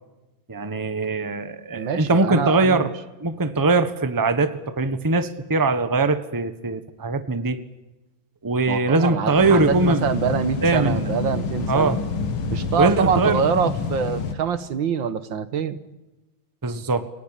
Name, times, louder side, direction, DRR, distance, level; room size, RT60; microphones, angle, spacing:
voice 1, 0.5-2.9 3.2-7.6 8.4-10.0 10.6-11.1 11.7-12.0 12.8-13.4 16.6-17.1, right 3 dB, 10° right, 10 dB, 1.1 m, -21 dB
voice 2, 1.8-2.9 8.7-12.0 12.5-15.8, right 7 dB, 75° right, 12 dB, 2.0 m, -25 dB
sound 1, 9.4-14.3, left 5 dB, 90° left, 2.4 m, -28 dB
29.0 x 19.0 x 9.0 m, 1.1 s
omnidirectional pair, 2.2 m